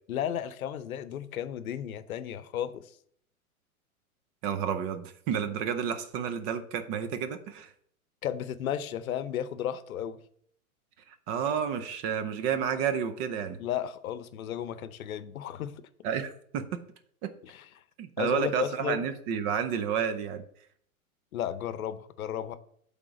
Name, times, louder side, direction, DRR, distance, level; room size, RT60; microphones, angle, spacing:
voice 1, 0.1-2.9 8.2-10.2 13.6-15.7 17.4-17.7 18.2-19.1 21.3-22.6, left 10 dB, 70° left, 0.8 m, -34 dB
voice 2, 4.4-7.7 11.3-13.6 16.0-16.8 17.2-17.3 18.0-20.4, right 7 dB, 30° right, 0.6 m, -30 dB
8.4 x 3.5 x 4.9 m
hypercardioid pair, 115°, 43 cm